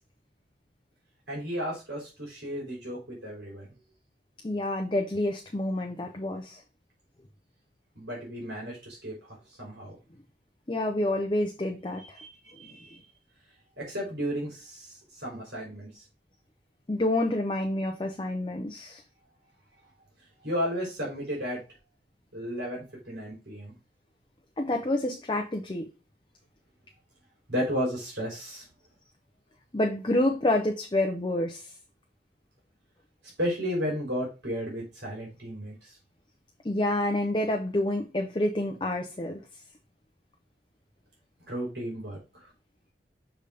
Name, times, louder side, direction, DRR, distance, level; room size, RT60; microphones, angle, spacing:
voice 1, 1.3-3.7 8.0-10.0 12.1-12.3 12.5-13.0 13.8-16.0 20.4-21.6 22.3-23.7 27.5-28.6 33.4-35.9 41.5-42.2, equal, 75° right, -4 dB, 3.6 m, -33 dB
voice 2, 4.4-6.6 10.7-12.2 16.9-19.0 24.6-25.9 29.7-31.7 36.6-39.4, left 1 dB, 25° left, 2 dB, 0.7 m, -28 dB
6.9 x 3.6 x 5.0 m, 0.29 s
head